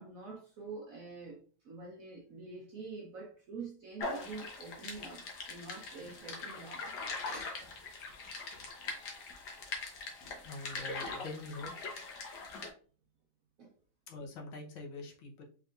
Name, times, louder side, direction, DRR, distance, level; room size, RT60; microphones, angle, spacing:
voice 1, 0.0-6.9 7.3-7.6 13.6-13.7, right 4 dB, 60° right, 0.9 m, -46 dB
sound 1, 4.0-12.7, left 3 dB, 60° left, 1.4 m, -42 dB
voice 2, 10.4-11.7 14.1-15.4, left 2 dB, 85° left, 1.7 m, -44 dB
4.4 x 3.4 x 2.4 m
omnidirectional pair, 2.1 m